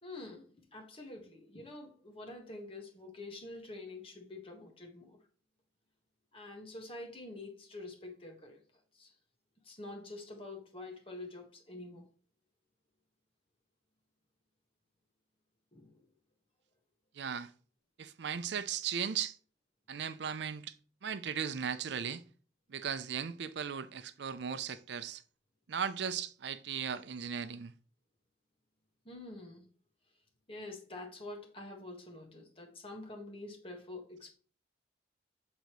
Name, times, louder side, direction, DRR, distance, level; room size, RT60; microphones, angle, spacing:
voice 1, 0.0-5.2 6.3-8.6 8.9-9.1 9.6-12.0 15.7-16.0 29.0-29.6 30.5-34.4, left 2 dB, 30° left, 1.5 m, -47 dB
voice 2, 17.1-17.5 18.0-19.4 19.9-20.8 21.0-22.2 22.7-25.2 25.7-27.7, right 7 dB, 70° right, 0.5 m, -37 dB
8.3 x 4.0 x 3.1 m
head